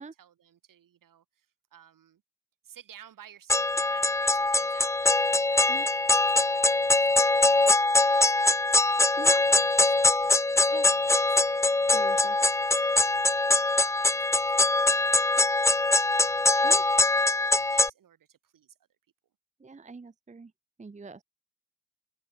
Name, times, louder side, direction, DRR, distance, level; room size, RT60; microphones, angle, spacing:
voice 1, 0.0-2.2 2.6-18.8, right 10 dB, 65° right, 6.9 m, -55 dB
sound 1, 3.5-17.9, left 2 dB, 10° left, 0.4 m, -23 dB
voice 2, 11.9-12.4 16.6-16.8 19.6-20.5 20.8-21.2, right 4 dB, 20° right, 0.9 m, -43 dB
hypercardioid pair, 50°, 35 cm